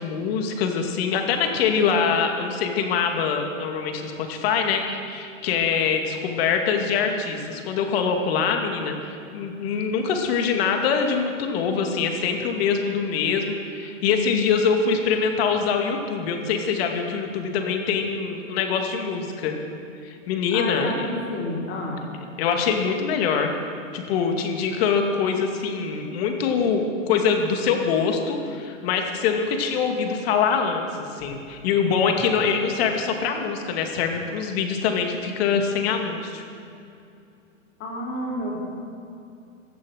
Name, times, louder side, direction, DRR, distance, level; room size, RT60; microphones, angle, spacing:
voice 1, 0.0-19.6 20.0-20.9 22.4-23.5 23.9-30.9 31.2-36.4, left 6 dB, 50° left, 4 dB, 2.4 m, -24 dB
voice 2, 20.5-22.1 31.2-31.4 37.8-38.6, left 1 dB, 30° left, -3 dB, 4.6 m, -30 dB
16.5 x 12.5 x 6.5 m, 2.6 s
hypercardioid pair, 125°, 39 cm